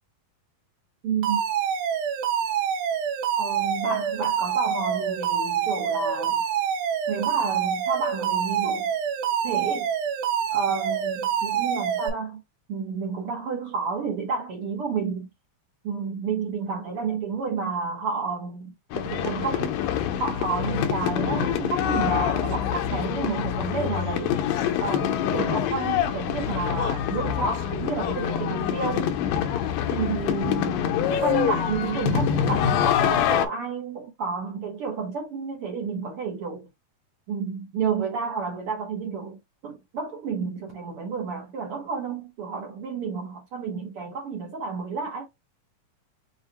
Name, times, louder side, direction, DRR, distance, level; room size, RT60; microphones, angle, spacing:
voice 1, 1.0-1.4 3.4-6.4 7.1-8.9 9.4-9.9 10.5-12.4 12.7-15.3 15.8-19.7 20.2-24.4 24.8-29.1 29.9-30.9 31.2-36.7 37.3-45.3, right 5 dB, 70° right, 1.3 m, -30 dB
Alarm, 1.2-12.1, right 8 dB, 90° right, 2.7 m, -26 dB
sound 1, 18.9-33.5, left 9 dB, 80° left, 2.2 m, -25 dB
7.0 x 2.4 x 2.8 m
omnidirectional pair, 4.1 m